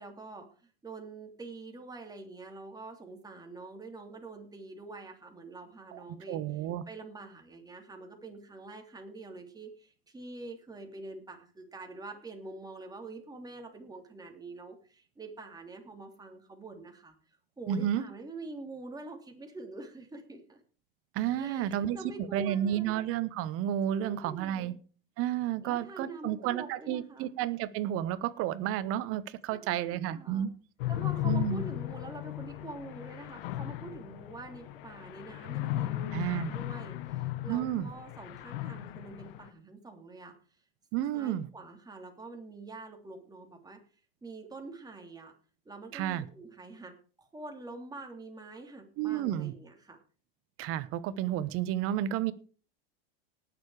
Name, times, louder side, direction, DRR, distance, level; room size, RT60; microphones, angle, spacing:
voice 1, 0.0-6.4 6.9-17.1 17.6-20.6 21.4-22.9 23.9-24.8 25.6-27.3 29.5-30.5 30.9-40.3 41.1-43.8 44.2-45.3 45.6-46.9 47.2-50.0, right 3 dB, 15° right, 3 dB, 3.2 m, -46 dB
voice 2, 6.3-6.8 17.7-18.0 21.1-22.0 22.3-24.7 25.2-30.5 31.2-31.6 36.1-36.5 37.5-37.9 40.9-41.5 45.9-46.3 49.0-49.5 50.6-52.3, right 11 dB, 50° right, 16 dB, 1.1 m, -31 dB
sound 1, 30.8-39.5, left 15 dB, 65° left, 1.4 m, -36 dB
18.5 x 7.0 x 4.9 m, 0.39 s
hypercardioid pair, 95°, 30 cm